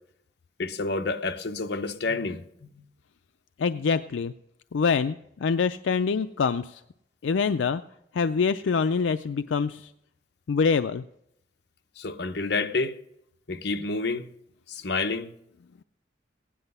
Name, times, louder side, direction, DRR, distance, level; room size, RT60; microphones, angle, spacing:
voice 1, 0.6-2.7 12.0-13.0 13.5-14.3 14.7-15.3, left 3 dB, 60° left, 0.8 m, -29 dB
voice 2, 3.6-4.3 4.7-6.8 7.2-7.8 8.1-9.9 10.5-11.0, left 5 dB, 80° left, 0.4 m, -25 dB
16.5 x 10.0 x 5.5 m
head